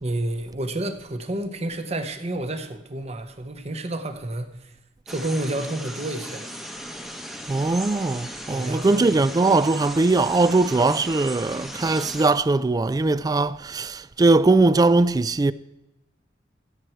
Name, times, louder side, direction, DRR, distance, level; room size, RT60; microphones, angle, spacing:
voice 1, 0.0-4.7 5.1-6.6 8.5-9.2, right 1 dB, 35° right, 1.0 m, -30 dB
sound 1, 5.1-12.3, equal, ahead, 0.9 m, -37 dB
voice 2, 7.5-15.5, right 3 dB, 20° right, 0.3 m, -20 dB
15.5 x 7.9 x 4.5 m
head